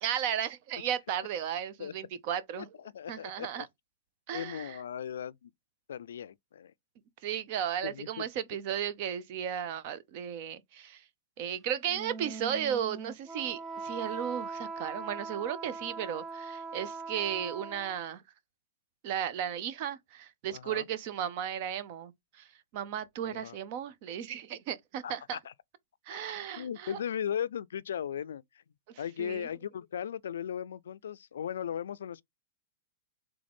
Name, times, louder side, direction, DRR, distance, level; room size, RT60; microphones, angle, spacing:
voice 1, 0.0-2.7 3.1-3.7 4.3-4.8 7.2-11.0 11.4-18.2 19.0-22.5 22.7-25.4 26.1-27.0 28.9-29.5, right 9 dB, 50° right, 0.7 m, -35 dB
voice 2, 2.6-3.7 4.3-5.5 5.9-6.7 7.8-8.3 20.5-20.8 23.2-23.6 25.0-25.5 26.1-26.2 26.6-28.4 29.0-32.2, left 9 dB, 85° left, 0.3 m, -37 dB
Wind instrument woodwind instrument, 11.9-18.1, right 4 dB, 15° right, 0.6 m, -41 dB
3.8 x 3.4 x 3.5 m
hypercardioid pair, 130°, 0 cm